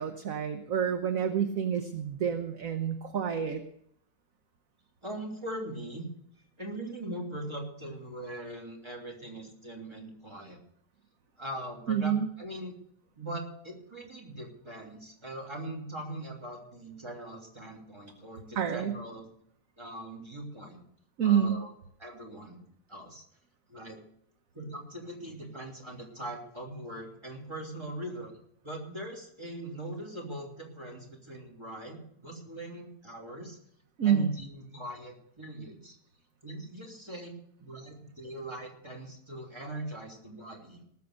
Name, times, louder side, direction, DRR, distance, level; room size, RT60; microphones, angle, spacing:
voice 1, 0.0-3.6 11.9-12.3 18.6-19.0 21.2-21.6 34.0-34.3, right 8 dB, 55° right, 7 dB, 1.2 m, -28 dB
voice 2, 5.0-6.0 6.6-10.6 11.4-12.7 13.1-19.3 19.8-20.8 21.2-21.7 22.0-22.6 22.9-23.2 23.7-24.0 24.5-28.3 28.6-33.6 34.0-36.0 36.4-37.3 37.6-40.8, right 1 dB, 15° right, 0 dB, 3.0 m, -41 dB
19.0 x 7.1 x 6.6 m, 0.70 s
omnidirectional pair, 1.9 m